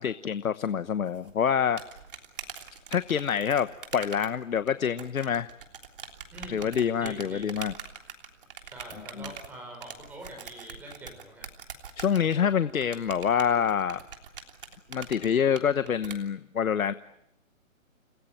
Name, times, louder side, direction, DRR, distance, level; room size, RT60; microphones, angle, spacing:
voice 1, 0.0-1.8 2.9-5.5 6.5-7.7 9.2-9.3 12.0-14.0 14.9-16.9, left 8 dB, 85° left, 13 dB, 1.2 m, -26 dB
sound 1, 1.1-16.2, right 7 dB, 40° right, 3.3 m, -44 dB
voice 2, 6.3-7.4 8.6-11.5, right 1 dB, 5° right, 1 dB, 5.8 m, -44 dB
29.5 x 20.0 x 9.2 m, 0.79 s
hypercardioid pair, 175°, 41 cm